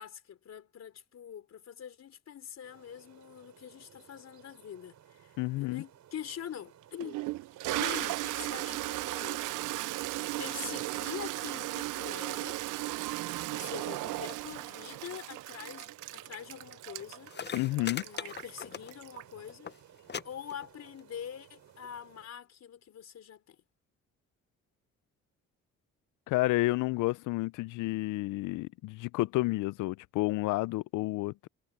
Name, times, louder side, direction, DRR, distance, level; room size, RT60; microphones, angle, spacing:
voice 1, 0.0-7.2 7.7-9.6 10.4-12.6 13.5-17.4 18.0-19.7 20.2-23.6, left 9 dB, 60° left, 3.9 m, -44 dB
sound 1, 2.6-22.3, right 10 dB, 65° right, 5.2 m, -58 dB
voice 2, 5.4-5.8 17.5-18.0 26.3-31.5, left 20 dB, 90° left, 0.5 m, -30 dB
Toilet flush, 6.3-6.4 7.0-19.5, right 18 dB, 85° right, 0.5 m, -36 dB
sound 2, 17.0-17.1 17.3-19.2 19.5-19.8 20.1-20.2 20.5-21.0 21.8-21.9, left 7 dB, 35° left, 0.8 m, -39 dB
cardioid pair, 90°, 30 cm